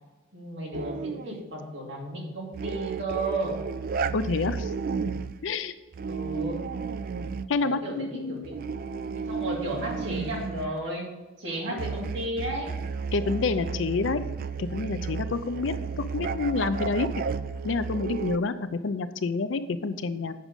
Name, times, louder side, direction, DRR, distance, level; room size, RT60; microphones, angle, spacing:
voice 1, 0.3-3.6 6.1-6.6 7.6-12.7 16.0-16.1, right 1 dB, 65° right, -2 dB, 2.5 m, -34 dB
sound 1, 0.7-1.4 2.5-5.4 5.9-7.5 8.4-10.8 11.8-18.4, right 5 dB, 50° right, 0.3 m, -33 dB
voice 2, 4.1-4.7 5.4-5.7 7.5-8.5 11.7-11.8 13.1-14.2 14.6-17.1 17.6-20.3, left 3 dB, 75° left, 12 dB, 0.5 m, -28 dB
8.1 x 6.1 x 5.1 m, 1.2 s
head